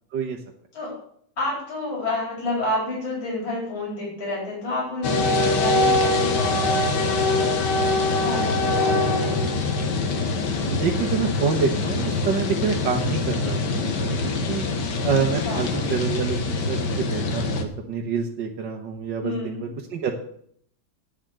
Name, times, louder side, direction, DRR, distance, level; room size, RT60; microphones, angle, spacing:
voice 1, 1.4-7.5 8.0-9.5 15.4-15.7 19.2-19.7, left 2 dB, 75° left, -4 dB, 5.1 m, -30 dB
sound 1, 5.0-17.6, left 3 dB, 60° left, 1.9 m, -23 dB
voice 2, 10.7-14.6 15.0-20.2, right 6 dB, 65° right, 1 dB, 1.7 m, -27 dB
8.8 x 7.6 x 8.1 m, 0.65 s
omnidirectional pair, 2.2 m